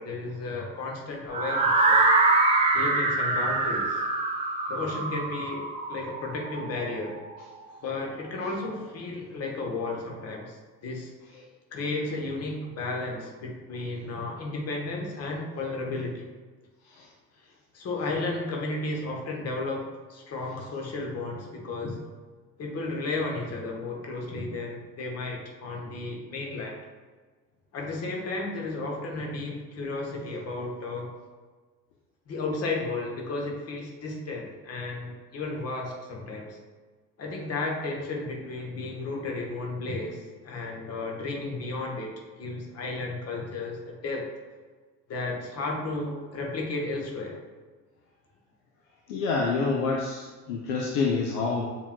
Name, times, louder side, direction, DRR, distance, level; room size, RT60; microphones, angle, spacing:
voice 1, 0.0-2.1 2.7-4.0 4.7-7.1 7.8-11.1 11.7-16.3 17.7-22.0 22.6-26.8 27.7-31.1 32.3-36.6 37.2-42.1 42.4-44.3 45.1-47.4, left 2 dB, 30° left, 0 dB, 1.1 m, -33 dB
sound 1, 1.3-7.2, right 3 dB, 15° right, 0.5 m, -24 dB
voice 2, 49.1-51.8, left 4 dB, 55° left, 0 dB, 0.6 m, -28 dB
7.0 x 3.0 x 2.3 m, 1.4 s
figure-of-eight pair, 60°, 49 cm